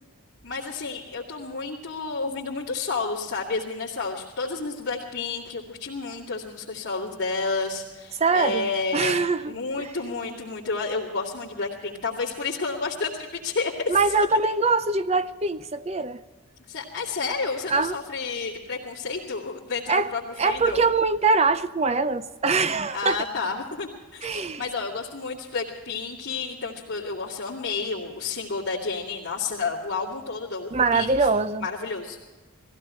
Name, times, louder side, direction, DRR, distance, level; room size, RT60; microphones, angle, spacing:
voice 1, 0.4-14.0 16.7-20.8 22.9-31.3 31.6-32.2, left 4 dB, 55° left, -8 dB, 2.4 m, -31 dB
voice 2, 8.1-9.9 13.9-16.2 17.7-18.0 19.9-20.1 20.4-23.2 24.2-24.6 30.7-31.7, right 4 dB, 30° right, 13 dB, 0.5 m, -23 dB
19.0 x 15.5 x 4.4 m, 1.3 s
head